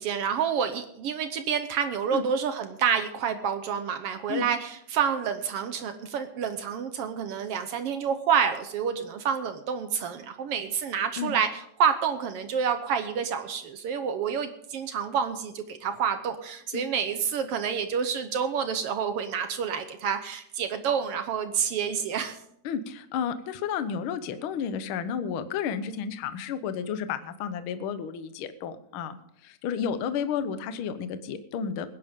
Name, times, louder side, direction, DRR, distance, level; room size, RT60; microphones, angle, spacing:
voice 1, 0.0-22.4, right 7 dB, 65° right, 9 dB, 1.6 m, -28 dB
voice 2, 22.6-29.2 29.4-31.9, left 7 dB, 65° left, 11 dB, 1.4 m, -32 dB
20.5 x 10.5 x 3.7 m, 0.71 s
omnidirectional pair, 3.4 m